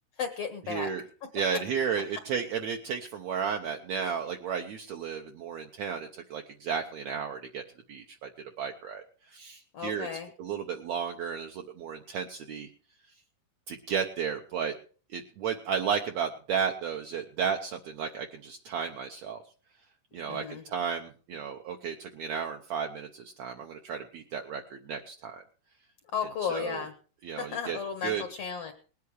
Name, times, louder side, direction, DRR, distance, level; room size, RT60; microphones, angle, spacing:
voice 1, 0.2-0.9 1.2-1.3 9.7-10.3 20.3-20.6 26.1-26.9 27.4-28.7, left 7 dB, 65° left, 6 dB, 1.6 m, -34 dB
voice 2, 0.7-1.0 1.3-7.6 7.9-8.3 8.6-9.0 9.3-10.1 10.4-12.7 13.7-14.7 15.1-19.4 20.1-25.4 26.5-26.8 27.2-28.2, right 7 dB, 70° right, 3 dB, 1.8 m, -33 dB
20.0 x 8.5 x 4.7 m, 0.39 s
omnidirectional pair, 3.8 m